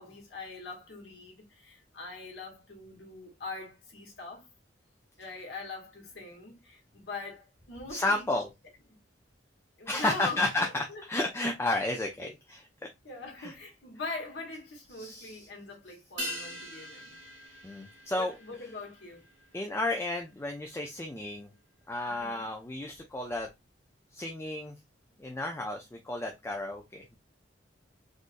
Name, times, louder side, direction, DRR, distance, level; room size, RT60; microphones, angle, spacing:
voice 1, 0.0-4.5 5.2-8.4 9.8-11.0 12.2-12.3 13.0-17.2 18.1-19.2 22.0-22.5, left 3 dB, 70° left, 1.3 m, -42 dB
voice 2, 7.9-8.5 9.9-12.6 13.4-13.5 14.9-15.5 17.6-18.7 19.5-21.5 21.9-23.5 24.1-24.7 25.2-27.2, left 2 dB, 15° left, 0.4 m, -32 dB
sound 1, 16.2-20.9 21.1-21.2, equal, 85° right, 1.1 m, -43 dB
3.7 x 2.5 x 2.4 m
head